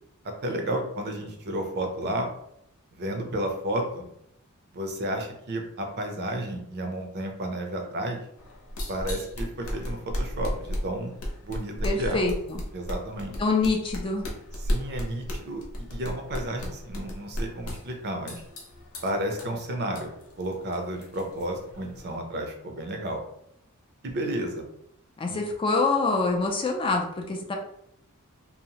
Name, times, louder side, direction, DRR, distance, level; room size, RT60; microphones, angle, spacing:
voice 1, 0.2-2.3 3.0-4.1 4.7-8.2 8.9-11.1 11.4-12.2 12.7-13.3 14.6-18.4 19.0-23.2 24.0-24.6 25.3-25.4, right 1 dB, 50° right, 3 dB, 0.5 m, -32 dB
sound 1, 8.4-22.2, equal, 70° left, 0.7 m, -35 dB
voice 2, 11.8-12.6 13.4-14.2 25.2-27.6, left 3 dB, 25° left, 2 dB, 0.3 m, -25 dB
2.7 x 2.0 x 2.8 m, 0.75 s
head